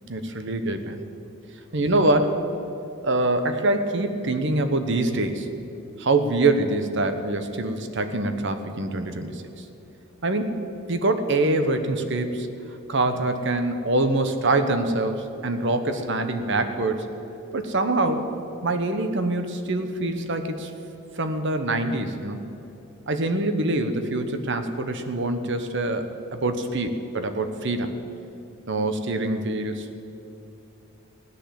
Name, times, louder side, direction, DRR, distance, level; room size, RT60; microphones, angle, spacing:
voice 1, 0.1-1.0 1.7-2.4 3.0-5.5 6.0-9.6 10.2-10.6 10.9-12.5 12.9-17.1 17.5-18.3 18.6-20.7 21.2-22.5 23.1-28.0 28.7-30.0, right 2 dB, 55° right, 8 dB, 1.0 m, -25 dB
16.5 x 10.5 x 7.6 m, 2.9 s
head